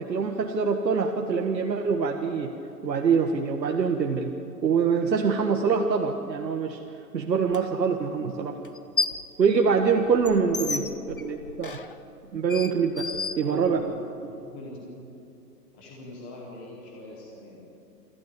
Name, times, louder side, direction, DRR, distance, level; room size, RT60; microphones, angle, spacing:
voice 1, 0.0-2.5 2.8-4.3 4.6-6.8 7.1-8.5 9.4-11.8 12.3-13.0 13.4-13.8, right 5 dB, 90° right, 3 dB, 1.6 m, -24 dB
sound 1, 7.5-7.6 8.6-9.3 9.7-14.0, left 4 dB, 35° left, 0.5 m, -33 dB
voice 2, 10.7-11.1 13.4-13.9 14.3-15.0 15.7-17.6, left 2 dB, 5° left, -2 dB, 0.8 m, -43 dB
27.5 x 12.0 x 8.1 m, 2.7 s
hypercardioid pair, 165°, 50 cm